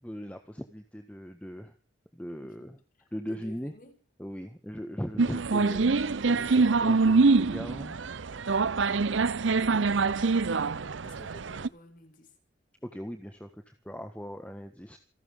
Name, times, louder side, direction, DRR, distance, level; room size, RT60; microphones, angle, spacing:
voice 1, 0.0-1.7 2.1-2.7 3.1-3.7 4.2-7.9 12.8-15.0, equal, 5° left, 7 dB, 1.5 m, -39 dB
voice 2, 3.0-4.0 4.4-4.6 9.3-10.4 11.0-12.4, left 1 dB, 45° left, 4 dB, 6.2 m, -53 dB
sound 1, 5.2-11.7, right 4 dB, 85° right, 0.7 m, -25 dB
27.5 x 12.5 x 3.7 m, 0.38 s
head